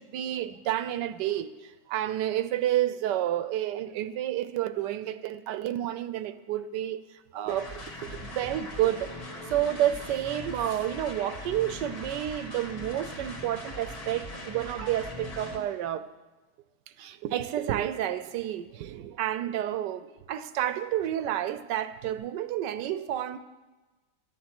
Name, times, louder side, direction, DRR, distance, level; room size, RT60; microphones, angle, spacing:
voice 1, 0.0-9.1 9.5-16.0 17.0-23.4, right 12 dB, 80° right, 1.3 m, -30 dB
sound 1, 7.5-15.6, left 1 dB, 60° left, 2.1 m, -40 dB
13.0 x 9.4 x 6.0 m
omnidirectional pair, 1.9 m